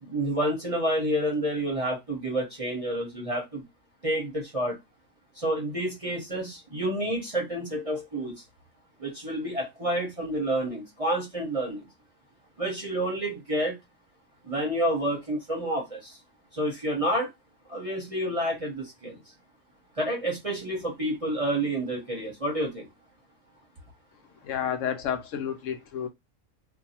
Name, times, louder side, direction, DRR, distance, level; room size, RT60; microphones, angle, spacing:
voice 1, 0.0-3.6 4.0-4.7 5.4-8.3 9.0-11.9 12.6-13.8 14.4-16.2 16.5-17.3 17.7-19.2 20.0-22.9, right 1 dB, 30° right, 0.8 m, -29 dB
voice 2, 24.4-26.1, left 9 dB, 75° left, 0.9 m, -31 dB
2.6 x 2.3 x 4.1 m
omnidirectional pair, 1.3 m